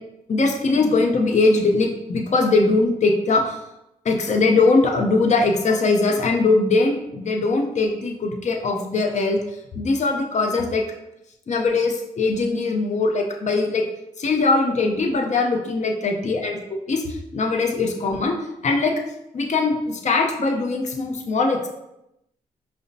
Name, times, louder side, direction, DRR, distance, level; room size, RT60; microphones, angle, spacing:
voice 1, 0.3-3.5 4.0-9.4 9.8-10.8 11.5-13.8 14.2-16.6 16.9-17.0 17.3-18.4 18.6-18.9 19.3-21.7, left 3 dB, 50° left, 2 dB, 0.6 m, -21 dB
4.9 x 2.1 x 2.6 m, 0.86 s
cardioid pair, 60°, 16 cm